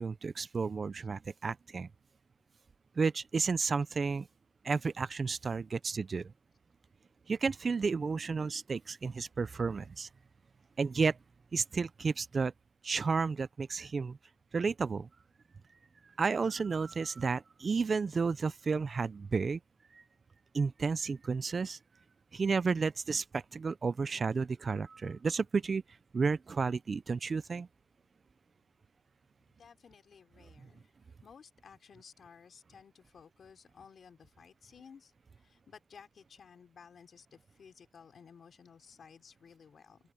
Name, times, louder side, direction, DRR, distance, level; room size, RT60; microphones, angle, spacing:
voice 1, 0.0-1.9 3.0-4.3 4.6-6.3 7.3-10.1 10.8-11.2 11.5-12.5 12.8-14.2 14.5-15.1 16.2-19.6 19.9-20.0 20.5-21.8 22.3-25.8 26.1-27.7, right 4 dB, 40° right, 0.5 m, -32 dB
voice 2, 29.6-30.9 31.2-35.1 35.4-40.0, left 6 dB, 55° left, 4.1 m, -56 dB
open air
cardioid pair, 110°, 0 cm